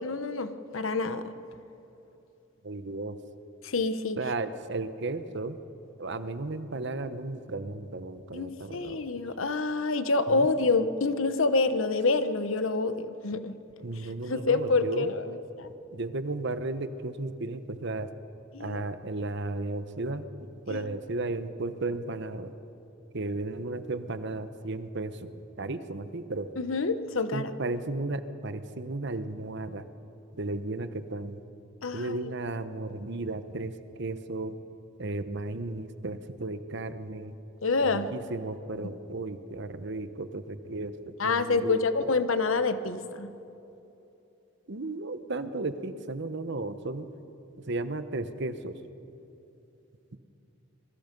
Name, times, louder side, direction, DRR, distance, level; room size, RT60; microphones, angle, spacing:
voice 1, 0.0-1.3 3.6-4.2 8.3-13.6 14.0-15.7 18.5-18.8 20.7-20.9 26.6-27.5 31.8-32.3 37.6-38.1 41.2-43.3, left 3 dB, 85° left, 11 dB, 1.1 m, -27 dB
voice 2, 2.6-3.2 4.2-5.6 6.0-9.2 10.3-10.5 13.8-15.1 15.9-18.1 18.6-22.5 23.1-25.3 25.6-26.5 27.3-29.9 30.4-31.4 31.9-34.6 35.0-37.3 37.9-42.1 44.7-47.1 47.7-48.7, right 2 dB, 60° right, 11 dB, 1.0 m, -34 dB
26.5 x 22.5 x 5.4 m, 2.9 s
head